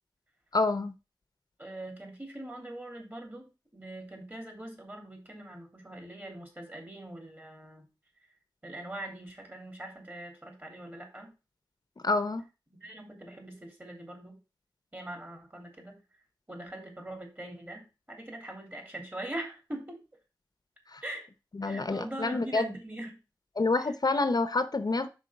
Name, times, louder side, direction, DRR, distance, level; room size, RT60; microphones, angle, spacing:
voice 1, 0.5-0.9 12.0-12.4 20.9-21.0 21.6-22.7 23.6-25.1, left 3 dB, 55° left, 0.7 m, -28 dB
voice 2, 1.6-7.9 8.6-11.3 12.8-14.4 14.9-16.0 16.5-20.0 21.0-21.3 21.6-23.2 23.8-23.9, right 1 dB, 25° right, 3.1 m, -42 dB
5.3 x 4.6 x 5.7 m
cardioid pair, 45°, 8 cm